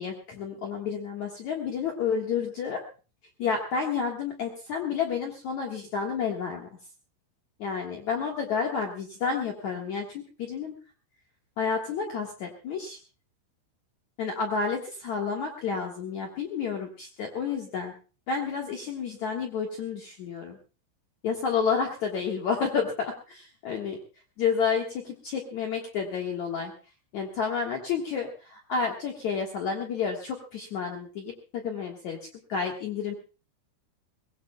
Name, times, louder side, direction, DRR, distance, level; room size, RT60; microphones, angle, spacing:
voice 1, 0.0-2.8 3.4-6.7 7.6-10.7 11.6-13.0 14.2-17.9 18.3-20.6 21.2-24.0 24.4-26.7 27.1-32.2 32.5-33.1, left 6 dB, 65° left, 1 dB, 1.8 m, -30 dB
22.0 x 20.5 x 2.3 m, 0.34 s
omnidirectional pair, 5.8 m